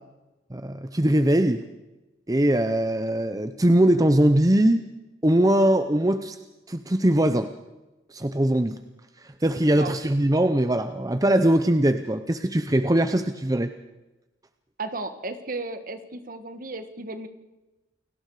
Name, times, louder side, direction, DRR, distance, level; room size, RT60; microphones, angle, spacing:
voice 1, 0.5-1.6 2.3-4.8 5.2-6.4 6.7-7.5 8.1-8.8 9.2-13.7, right 1 dB, 20° right, 9 dB, 0.7 m, -21 dB
voice 2, 14.8-17.3, right 2 dB, 50° right, 9 dB, 1.7 m, -34 dB
29.0 x 18.5 x 4.9 m, 1.1 s
head